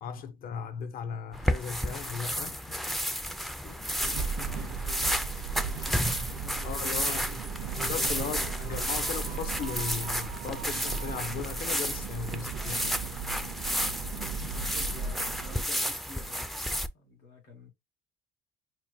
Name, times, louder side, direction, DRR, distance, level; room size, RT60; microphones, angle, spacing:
voice 1, 0.0-3.0 6.6-7.3 7.8-12.9, left 7 dB, 60° left, 0.6 m, -37 dB
sound 1, 1.3-16.9, equal, ahead, 0.3 m, -32 dB
voice 2, 3.6-5.1 6.2-9.0 12.6-13.0 14.1-16.5 16.9-17.7, left 3 dB, 90° left, 2.1 m, -50 dB
sound 2, 4.0-15.6, right 5 dB, 60° right, 0.5 m, -36 dB
6.0 x 2.1 x 2.7 m
cardioid pair, 110°, 17 cm